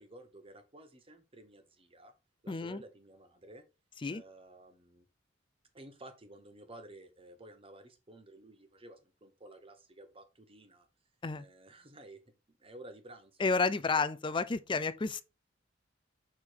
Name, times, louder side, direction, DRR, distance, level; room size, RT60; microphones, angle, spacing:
voice 1, 0.0-2.1 2.4-3.6 4.1-5.1 5.7-10.9 11.3-12.2 12.5-14.1, right 1 dB, 30° right, 1.1 m, -53 dB
voice 2, 2.5-2.8 4.0-4.2 11.2-11.4 13.4-15.2, left 4 dB, 25° left, 0.4 m, -31 dB
6.6 x 3.6 x 4.5 m
head